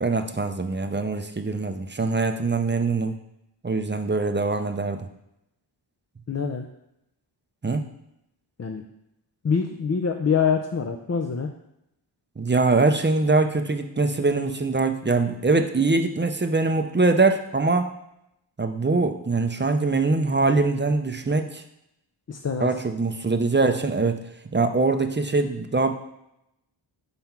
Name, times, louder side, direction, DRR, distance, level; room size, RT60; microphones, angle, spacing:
voice 1, 0.0-3.1 3.6-5.0 7.6-7.8 12.4-17.9 18.6-21.6 22.6-24.2 24.5-25.9, right 3 dB, 25° right, 7 dB, 0.5 m, -23 dB
voice 2, 6.3-6.7 8.6-8.8 9.4-11.5 22.3-22.7, left 6 dB, 35° left, 4 dB, 0.5 m, -25 dB
5.6 x 4.3 x 5.9 m, 0.82 s
wide cardioid pair, 80°, 48 cm